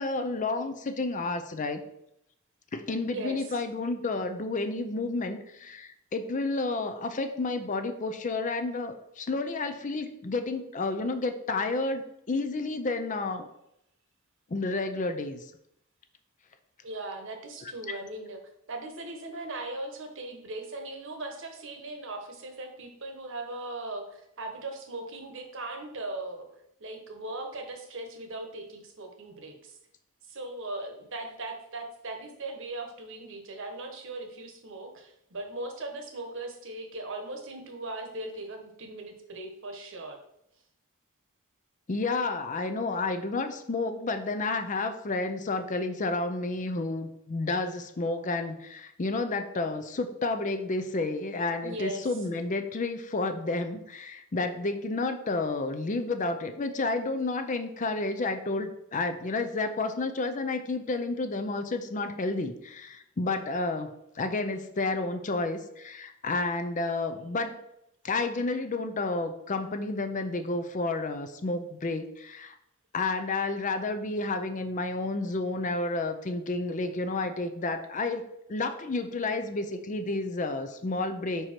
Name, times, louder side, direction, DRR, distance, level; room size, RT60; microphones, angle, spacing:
voice 1, 0.0-1.8 2.7-13.5 14.5-15.4 17.9-18.0 41.9-67.6 68.0-72.5 72.9-78.2 78.5-81.5, left 3 dB, 35° left, 8 dB, 0.5 m, -31 dB
voice 2, 3.0-3.6 16.8-18.4 18.7-29.8 30.3-40.2 51.6-52.2, right 2 dB, 60° right, 4 dB, 1.1 m, -39 dB
5.0 x 4.7 x 4.3 m, 0.78 s
head